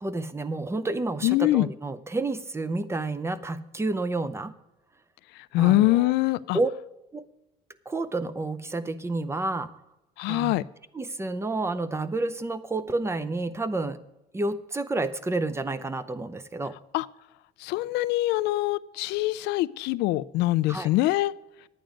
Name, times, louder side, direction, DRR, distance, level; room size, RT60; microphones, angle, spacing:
voice 1, 0.0-4.5 5.6-6.1 6.5-6.7 7.1-7.3 7.9-9.7 10.3-10.5 10.9-14.0 14.3-16.8 20.7-20.9, right 2 dB, 15° right, 13 dB, 0.6 m, -30 dB
voice 2, 1.2-1.7 5.5-6.6 10.2-10.6 16.9-17.1 17.6-21.3, left 17 dB, 90° left, 17 dB, 0.4 m, -23 dB
10.5 x 9.0 x 5.1 m, 0.94 s
cardioid pair, 110°, 17 cm